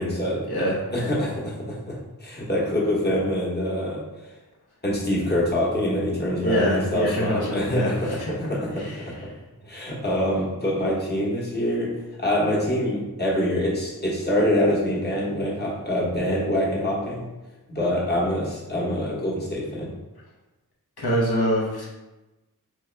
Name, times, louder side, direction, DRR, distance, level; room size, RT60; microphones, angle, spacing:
voice 1, 0.0-4.0 4.8-9.1 9.6-11.9 12.2-17.2 17.7-19.9, left 1 dB, 25° left, -4 dB, 1.0 m, -25 dB
voice 2, 6.4-8.4 8.8-9.1 21.0-21.9, equal, 90° left, -5 dB, 0.9 m, -25 dB
3.5 x 3.0 x 3.2 m, 1.1 s
wide cardioid pair, 45°, 37 cm